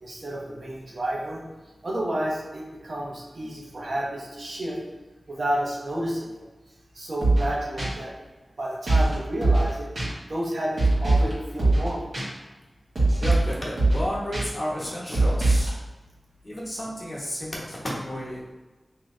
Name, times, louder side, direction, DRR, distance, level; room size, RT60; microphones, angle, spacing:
voice 1, 0.0-1.4 1.8-4.8 5.3-6.4 6.9-8.1 8.6-9.9 10.3-12.1, right 1 dB, 65° right, -4 dB, 0.9 m, -30 dB
sound 1, 7.2-7.5 7.8-7.9 8.9-9.1 9.4-9.7 10.0-10.1 10.8-11.3 11.6-11.9 12.1-12.2 13.0-13.5 13.8-14.0 14.3-14.4 15.1-15.7, right 2 dB, 90° right, 1.2 m, -21 dB
voice 2, 13.2-15.7 16.4-18.4, equal, 35° left, -5 dB, 1.0 m, -32 dB
3.1 x 2.8 x 3.6 m, 1.2 s
wide cardioid pair, 100°, 0 cm